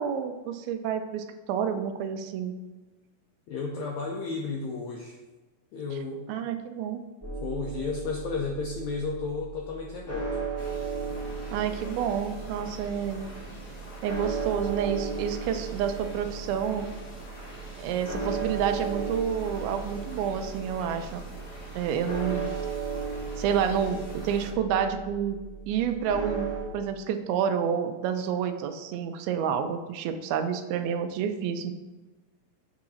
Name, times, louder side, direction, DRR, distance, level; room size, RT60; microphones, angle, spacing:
voice 1, 0.0-2.5 5.9-6.0 6.3-7.0 11.5-13.3 14.0-16.9 17.8-21.2 21.8-22.5 23.4-25.4 25.7-31.7, right 8 dB, 90° right, 8 dB, 2.5 m, -29 dB
voice 2, 3.5-5.2 5.7-6.3 7.4-10.4, left 4 dB, 90° left, 0 dB, 1.6 m, -33 dB
sound 1, 7.2-26.6, right 5 dB, 10° left, 1.1 m, -36 dB
sound 2, 10.6-24.5, left 1 dB, 50° left, 1.9 m, -45 dB
7.3 x 3.8 x 6.2 m, 1.2 s
omnidirectional pair, 4.2 m